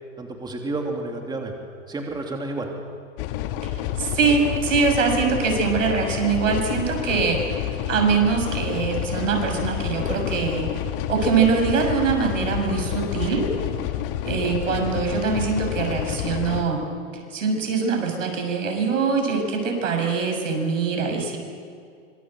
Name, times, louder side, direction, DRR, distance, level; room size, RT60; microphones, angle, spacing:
voice 1, 0.2-1.5 1.9-2.7, right 2 dB, 10° right, 1 dB, 3.2 m, -30 dB
sound 1, 3.2-16.6, left 12 dB, 45° left, 2.0 m, -29 dB
voice 2, 4.0-10.7 11.1-13.5 14.3-16.8 17.3-21.4, right 5 dB, 75° right, 4 dB, 6.9 m, -23 dB
25.5 x 25.5 x 7.9 m, 2.2 s
hypercardioid pair, 120°, 38 cm